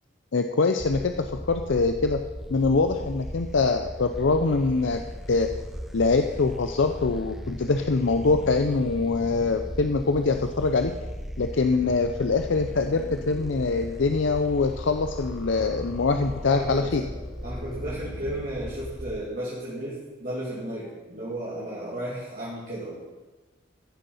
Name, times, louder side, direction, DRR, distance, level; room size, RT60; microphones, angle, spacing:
voice 1, 0.3-2.2 2.5-5.0 5.3-5.5 5.9-10.9 11.4-17.0, left 3 dB, 75° left, 6 dB, 0.6 m, -24 dB
sound 1, 0.8-19.2, equal, ahead, 0.5 m, -38 dB
sound 2, 8.3-18.3, left 2 dB, 55° left, 1.4 m, -46 dB
voice 2, 16.5-17.1 17.4-23.0, right 1 dB, 45° right, -8 dB, 2.5 m, -34 dB
15.0 x 7.1 x 5.5 m, 1.2 s
head